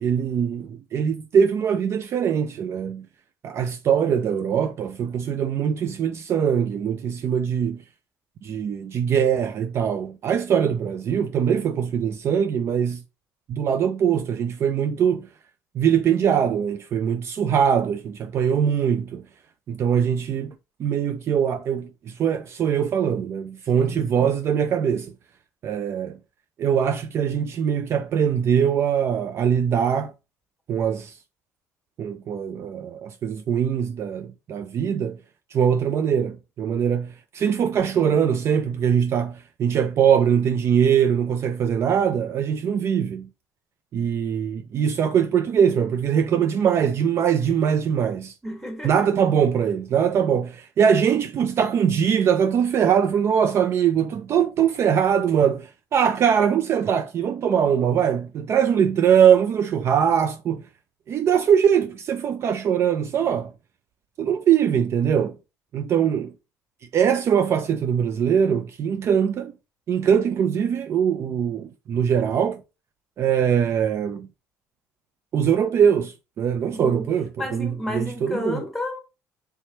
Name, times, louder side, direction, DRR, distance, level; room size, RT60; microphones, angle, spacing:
voice 1, 0.0-3.0 3.4-7.8 8.4-13.0 13.5-15.3 15.8-19.2 19.7-20.5 20.8-21.9 22.2-25.1 25.6-26.2 26.6-30.1 30.7-31.1 32.0-35.2 35.5-43.3 43.9-48.3 48.8-60.6 61.1-63.5 64.2-65.4 65.7-66.3 66.9-69.5 69.9-72.6 73.2-74.3 75.3-78.6, right 8 dB, 50° right, 0.3 m, -22 dB
voice 2, 23.7-24.3 48.4-49.0 76.6-77.1 77.4-79.0, left 1 dB, ahead, 1.4 m, -32 dB
3.4 x 3.1 x 2.8 m
cardioid pair, 100°, 6 cm